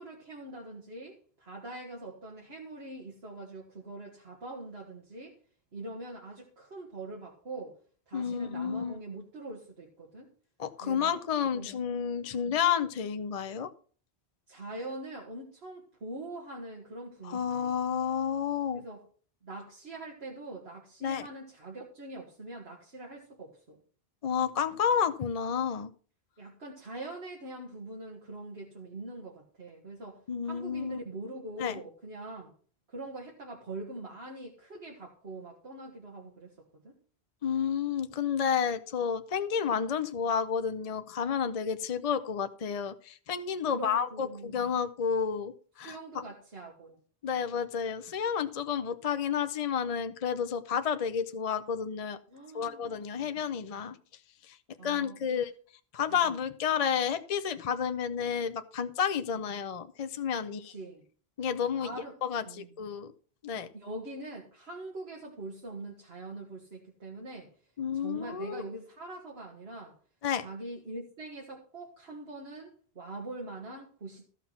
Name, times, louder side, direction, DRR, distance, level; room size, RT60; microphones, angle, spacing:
voice 1, 0.0-5.4 5.7-7.8 8.1-10.3 10.8-11.2 11.5-11.7 12.3-12.5 14.5-17.7 18.7-19.0 19.4-23.8 26.4-30.2 30.4-32.5 32.9-37.0 43.6-44.6 45.8-47.0 52.3-53.0 53.2-53.7 54.8-55.4 56.1-56.2 60.5-61.0 61.7-62.2 62.4-62.7 63.5-67.5 67.9-69.9 70.4-74.2, right 2 dB, 75° right, -2 dB, 2.0 m, -43 dB
voice 2, 8.1-9.0 10.6-13.7 17.2-18.8 21.0-21.3 24.2-25.9 30.3-31.0 31.6-31.7 37.4-46.0 47.2-52.2 52.5-54.0 54.4-54.6 54.8-55.5 55.9-60.7 61.4-61.9 62.2-63.1 63.4-63.7 67.8-68.6 70.2-70.4, left 7 dB, 40° left, 10 dB, 0.6 m, -31 dB
14.0 x 5.8 x 5.8 m, 0.43 s
omnidirectional pair, 1.1 m